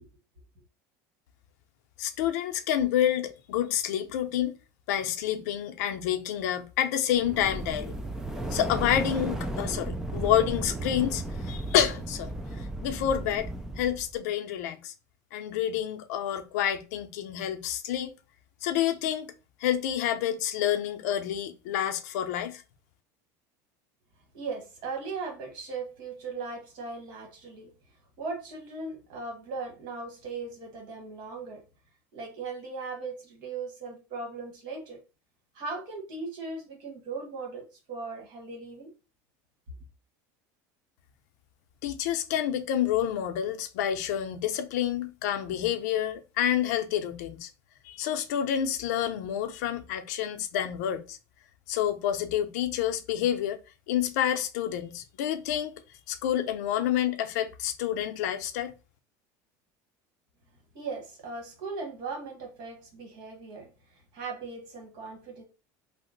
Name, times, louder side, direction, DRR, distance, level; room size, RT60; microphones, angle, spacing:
voice 1, 2.0-4.5 4.9-7.9 8.5-12.3 12.8-13.5 13.8-14.9 15.3-18.1 18.6-19.3 19.6-22.6 41.8-47.5 47.8-51.2 51.7-53.6 53.9-55.8 56.1-58.7, left 10 dB, 85° left, 0.5 m, -28 dB
sound 1, 7.1-14.1, right 1 dB, 5° right, 0.3 m, -34 dB
voice 2, 24.3-27.7 28.2-31.6 32.1-35.0 35.5-38.9 60.7-63.7 64.1-65.4, right 4 dB, 55° right, 1.3 m, -38 dB
2.8 x 2.0 x 3.8 m
cardioid pair, 150°, 9 cm